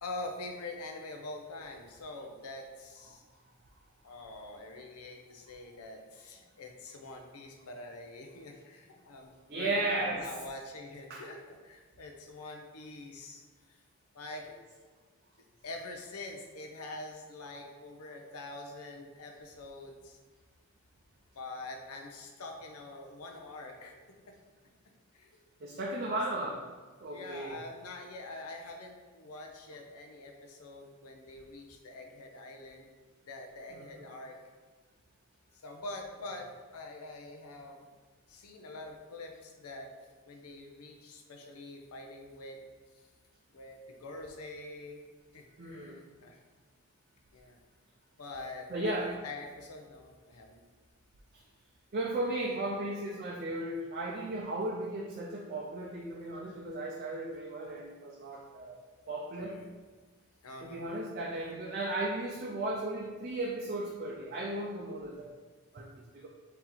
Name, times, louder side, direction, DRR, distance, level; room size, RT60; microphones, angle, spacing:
voice 1, 0.0-3.2 4.0-13.4 14.1-14.5 15.4-20.2 21.3-23.9 24.3-24.4 25.1-25.3 27.1-32.9 33.3-34.4 35.6-37.9 38.3-39.9 40.3-42.6 43.5-45.0 45.3-46.4 47.3-47.6 48.2-50.6 59.4-59.7 60.4-60.8, left 2 dB, 80° left, 2 dB, 0.7 m, -45 dB
voice 2, 9.5-10.3 11.1-11.2 14.3-14.5 25.6-26.6 27.0-27.6 33.7-34.1 45.6-46.0 48.7-49.1 51.9-58.8 59.1-59.6 60.6-65.3 65.7-65.9 66.1-66.3, right 2 dB, 45° right, -2 dB, 0.4 m, -35 dB
4.4 x 2.9 x 3.8 m, 1.4 s
head